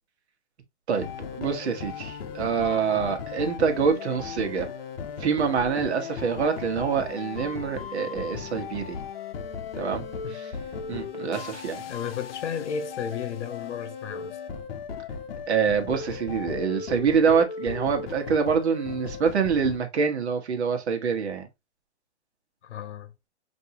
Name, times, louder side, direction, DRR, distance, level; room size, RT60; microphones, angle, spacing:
sound 1, 0.9-19.8, left 6 dB, 55° left, 0.7 m, -37 dB
voice 1, 1.4-4.7 5.2-9.0 9.8-10.0 10.3-10.5 10.9-11.8 15.5-21.5, right 6 dB, 70° right, 1.3 m, -25 dB
voice 2, 11.9-14.4 22.6-23.1, left 7 dB, 85° left, 1.0 m, -34 dB
5.3 x 2.7 x 2.8 m
hypercardioid pair, 170°, 34 cm